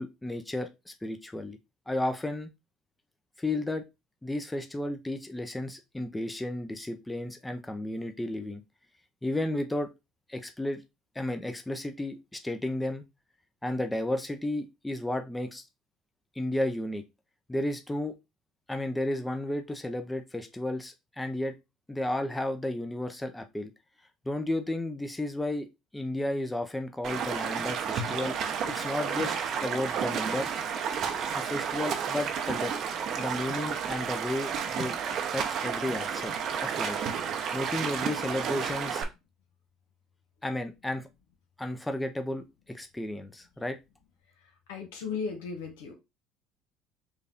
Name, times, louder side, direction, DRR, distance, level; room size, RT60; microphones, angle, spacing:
voice 1, 0.0-1.6 1.9-2.5 3.4-3.8 4.2-8.6 9.2-9.9 10.3-10.8 11.1-13.0 13.6-15.6 16.4-17.0 17.5-18.1 18.7-21.6 21.9-23.7 24.3-25.7 25.9-28.4 28.7-29.3 29.6-30.5 31.3-32.7 33.2-35.0 35.3-36.3 36.6-37.0 37.5-39.0 40.4-41.1 41.6-43.8, left 1 dB, 10° left, 7 dB, 0.6 m, -33 dB
Stream, 27.0-39.0, right 7 dB, 55° right, 0.8 m, -31 dB
voice 2, 44.7-45.9, left 5 dB, 90° left, 3 dB, 1.4 m, -35 dB
4.6 x 2.6 x 3.5 m, 0.24 s
supercardioid pair, 90°, 0 cm